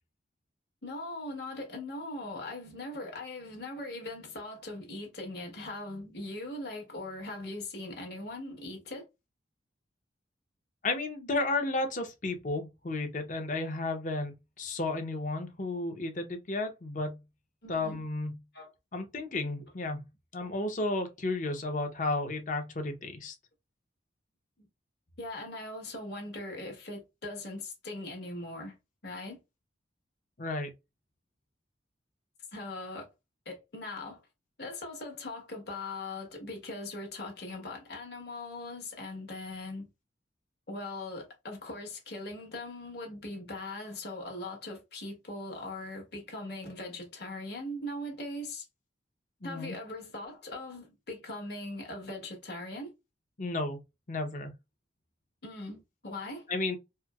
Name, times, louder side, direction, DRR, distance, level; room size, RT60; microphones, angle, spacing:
voice 1, 0.8-9.1 17.6-18.0 18.5-18.7 24.6-24.7 25.2-28.7 29.0-29.4 32.5-33.1 33.4-34.2 34.6-39.9 40.7-48.7 49.4-52.9 55.4-56.5, left 2 dB, 60° left, 1.4 m, -40 dB
voice 2, 10.8-17.2 17.7-18.4 18.9-20.0 20.3-23.3 30.4-30.7 49.4-49.7 53.4-53.8 54.1-54.5 56.5-56.8, left 2 dB, 40° left, 0.7 m, -33 dB
4.3 x 2.0 x 2.3 m
head